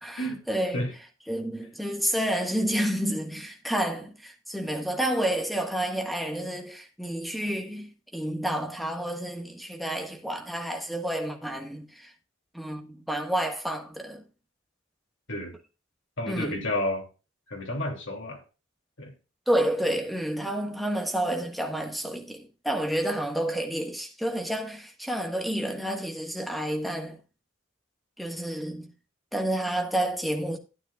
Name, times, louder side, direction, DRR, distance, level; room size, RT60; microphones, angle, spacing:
voice 1, 0.0-0.8 1.3-12.1 12.5-14.2 16.3-16.6 19.5-27.2 28.2-28.9 29.3-30.6, right 1 dB, ahead, 1.4 m, -30 dB
voice 2, 16.2-17.1 17.5-18.4 19.0-19.1, left 1 dB, 65° left, 2.7 m, -30 dB
12.5 x 9.5 x 2.4 m
head